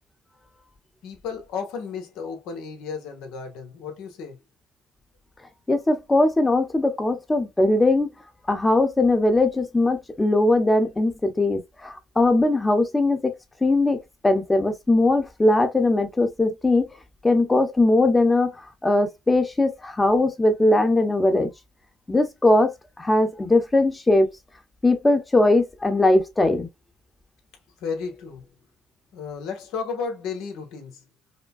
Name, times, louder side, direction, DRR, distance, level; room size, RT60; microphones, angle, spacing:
voice 1, 1.0-4.4 27.8-28.5 29.1-31.0, left 5 dB, 75° left, 1.4 m, -33 dB
voice 2, 5.7-8.1 8.5-13.3 13.6-16.9 17.2-18.5 18.8-21.5 22.1-22.7 23.0-24.3 24.8-26.7, left 2 dB, 15° left, 1.0 m, -20 dB
5.2 x 2.3 x 2.4 m
supercardioid pair, 90°, 0 cm